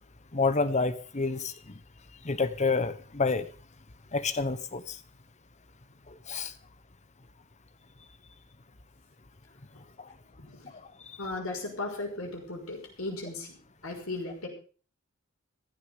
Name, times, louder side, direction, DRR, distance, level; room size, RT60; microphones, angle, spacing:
voice 1, 0.3-1.5 2.2-3.5 4.1-5.0 6.1-6.5, left 4 dB, 35° left, 13 dB, 1.1 m, -28 dB
voice 2, 10.4-10.7 11.2-13.5 13.8-14.5, left 2 dB, 75° left, 0 dB, 5.8 m, -36 dB
15.5 x 12.0 x 5.1 m, 0.38 s
head